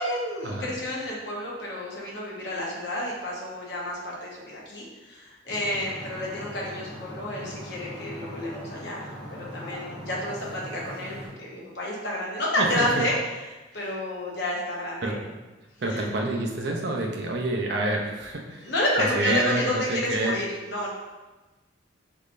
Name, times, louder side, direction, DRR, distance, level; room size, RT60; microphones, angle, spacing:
voice 1, 0.0-13.2 13.7-15.2 15.9-16.0 18.6-20.9, left 1 dB, 60° left, -4 dB, 0.8 m, -30 dB
sound 1, 5.5-11.3, equal, 5° right, 1.0 m, -40 dB
voice 2, 12.6-13.0 13.8-13.9 15.0-15.4 15.8-18.7 19.0-20.4, right 2 dB, 60° right, 0 dB, 0.5 m, -28 dB
3.5 x 3.1 x 2.5 m, 1.1 s
head